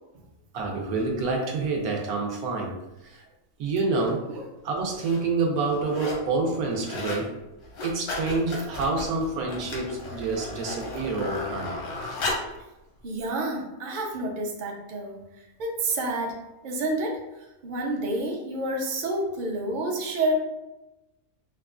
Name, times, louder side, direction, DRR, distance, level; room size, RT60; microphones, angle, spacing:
voice 1, 0.5-2.7 3.0-3.2 3.6-4.3 4.6-7.4 7.8-11.8, right 3 dB, 80° right, 0 dB, 1.2 m, -27 dB
sound 1, 4.0-4.1 4.8-5.2 5.6-6.3 6.6-7.3 7.6-12.6 13.2-13.3, left 2 dB, 90° left, 1.3 m, -35 dB
voice 2, 13.0-16.3 16.6-20.3, right 2 dB, 55° right, 0 dB, 0.5 m, -29 dB
4.4 x 2.2 x 2.4 m, 0.99 s
omnidirectional pair, 1.5 m